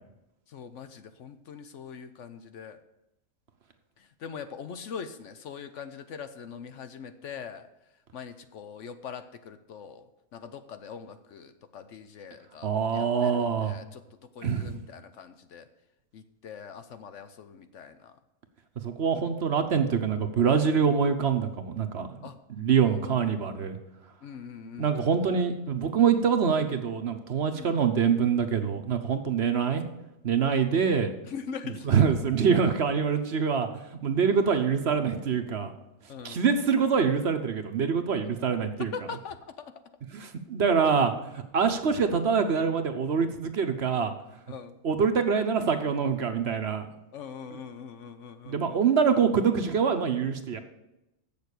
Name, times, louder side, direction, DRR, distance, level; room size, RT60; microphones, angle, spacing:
voice 1, 0.5-2.8 4.0-7.7 8.1-15.7 16.1-18.2 22.2-22.4 22.8-23.4 24.2-25.3 27.5-27.8 31.3-32.0 36.1-36.4 38.9-39.7 40.8-41.1 44.5-44.8 47.1-48.8, left 6 dB, 65° left, 10 dB, 1.0 m, -42 dB
voice 2, 12.6-13.7 14.4-14.7 18.8-23.8 24.8-29.8 30.2-31.1 31.9-33.7 34.0-35.7 36.2-38.9 40.1-44.1 44.8-46.9 47.5-47.6 48.5-50.6, right 6 dB, 55° right, 8 dB, 1.0 m, -25 dB
7.9 x 6.8 x 8.2 m, 0.92 s
omnidirectional pair, 1.5 m